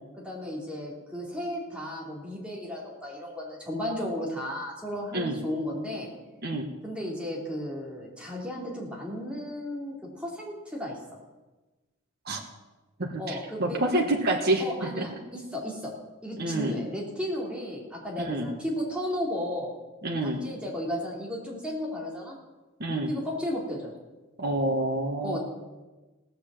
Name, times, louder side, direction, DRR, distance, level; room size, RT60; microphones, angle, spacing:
voice 1, 0.2-6.1 6.8-11.2 13.2-14.1 14.6-15.9 16.2-19.7 20.2-22.3 23.1-23.9 25.2-25.4, left 1 dB, 5° right, -4 dB, 2.9 m, -34 dB
voice 2, 13.0-15.1 16.4-16.8 18.2-18.5 20.0-20.4 22.8-23.1 24.4-25.4, right 1 dB, 45° right, 1 dB, 1.3 m, -28 dB
17.5 x 6.9 x 7.6 m, 1.2 s
head